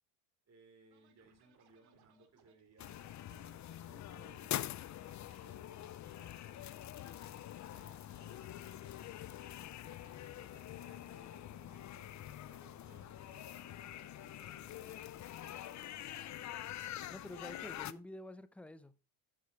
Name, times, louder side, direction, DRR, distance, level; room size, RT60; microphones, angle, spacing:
voice 1, 0.5-6.7 7.6-9.0 9.7-16.9, right 3 dB, 30° right, 5.2 m, -65 dB
Scratching (performance technique), 0.9-9.7 10.1-15.3 15.6-18.0, right 7 dB, 50° right, 2.4 m, -70 dB
sound 1, 2.8-17.9, left 12 dB, 35° left, 0.6 m, -45 dB
voice 2, 17.1-19.1, left 1 dB, 5° left, 0.7 m, -49 dB
10.5 x 7.2 x 4.7 m
cardioid pair, 120°, 48 cm